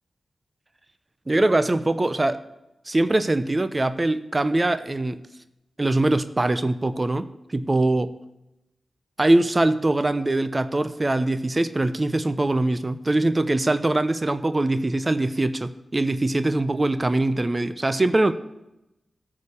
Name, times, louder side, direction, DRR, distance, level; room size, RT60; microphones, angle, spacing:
voice 1, 1.3-2.4 2.9-5.2 5.8-8.1 9.2-18.3, right 2 dB, 35° right, 12 dB, 0.7 m, -22 dB
13.5 x 5.0 x 7.1 m, 0.90 s
cardioid pair, 45°, 0 cm